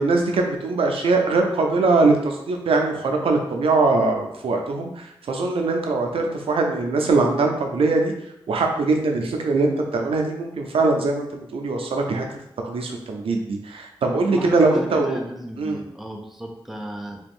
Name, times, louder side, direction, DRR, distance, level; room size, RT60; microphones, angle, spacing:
voice 1, 0.0-8.1 8.5-12.3 12.6-15.2 15.6-15.8, right 3 dB, 90° right, 3 dB, 0.4 m, -21 dB
voice 2, 14.3-17.2, right 1 dB, 5° right, 1 dB, 0.5 m, -34 dB
2.9 x 2.4 x 3.5 m, 0.80 s
wide cardioid pair, 80°, 9 cm